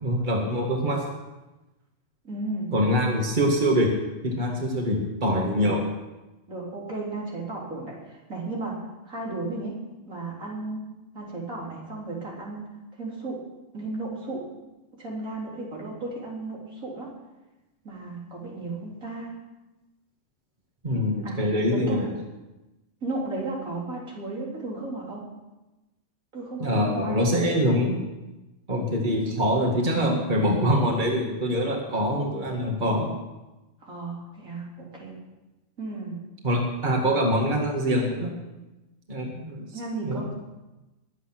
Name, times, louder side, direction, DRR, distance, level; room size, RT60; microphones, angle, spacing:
voice 1, 0.0-1.0 2.7-3.9 4.2-5.8 20.8-22.1 26.6-28.0 28.7-33.1 36.4-38.3 39.1-39.7 40.0-40.3, equal, 35° right, 0 dB, 2.3 m, -24 dB
voice 2, 2.2-2.7 5.5-5.7 6.5-8.8 9.0-9.7 10.1-10.8 11.1-12.7 12.9-13.4 13.7-14.4 15.0-17.1 17.8-19.3 21.2-21.4 21.7-22.1 23.0-25.2 26.3-27.5 33.8-35.2 35.8-36.2 39.7-40.3, right 2 dB, 85° right, -4 dB, 4.5 m, -34 dB
22.0 x 8.3 x 6.1 m, 1.1 s
omnidirectional pair, 1.4 m